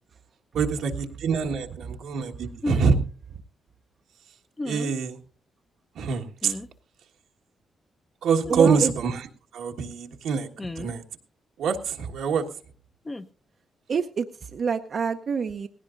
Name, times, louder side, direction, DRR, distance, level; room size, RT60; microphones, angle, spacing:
voice 1, 0.5-3.0 4.6-5.2 5.9-6.6 8.2-9.2 9.5-10.5 10.8-11.0 11.6-12.4, right 6 dB, 85° right, 3 dB, 1.5 m, -25 dB
sound 1, 2.6-2.9 4.6-5.0 6.4-6.7 8.4-8.7 10.6-10.9 13.0-13.3, left 2 dB, 20° left, 0.7 m, -33 dB
voice 2, 8.5-8.9 13.9-15.7, right 6 dB, 55° right, 6 dB, 0.7 m, -27 dB
19.0 x 17.0 x 2.5 m, 0.39 s
cardioid pair, 75°, 0 cm